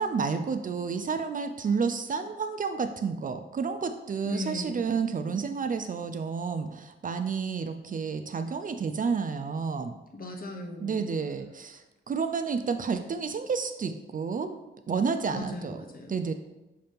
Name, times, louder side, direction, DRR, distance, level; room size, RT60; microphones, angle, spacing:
voice 1, 0.0-10.0 10.8-14.6 14.9-15.8 16.1-16.3, right 5 dB, 40° right, 8 dB, 0.4 m, -30 dB
voice 2, 4.2-4.9 10.1-11.2 15.3-16.2, left 2 dB, 45° left, 2 dB, 0.8 m, -38 dB
6.4 x 2.9 x 5.1 m, 1.0 s
wide cardioid pair, 150°, 20 cm